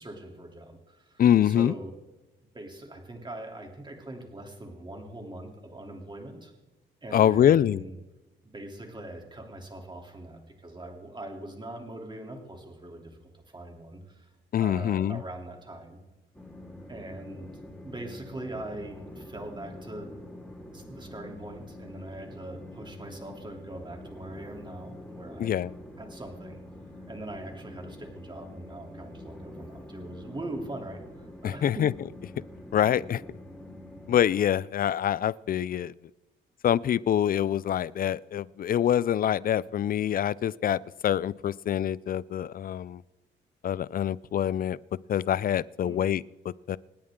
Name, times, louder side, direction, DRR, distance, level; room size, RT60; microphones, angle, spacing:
voice 1, 0.0-1.9 2.4-6.5 7.0-8.0 8.4-16.0 16.9-17.5 17.8-20.1 20.7-25.6 26.0-26.6 27.1-31.8 45.8-46.1, right 1 dB, 25° right, 2 dB, 3.1 m, -42 dB
voice 2, 1.2-1.7 7.1-7.8 14.5-15.2 25.4-25.7 31.4-31.9 32.7-33.2 34.1-35.9 36.6-43.0 43.6-44.8 45.1-46.2 46.7-46.8, left 10 dB, 45° left, 21 dB, 0.4 m, -25 dB
Train, 16.3-34.2, left 1 dB, 5° left, 3.7 m, -45 dB
27.5 x 9.6 x 3.7 m, 1.0 s
cardioid pair, 90°, 20 cm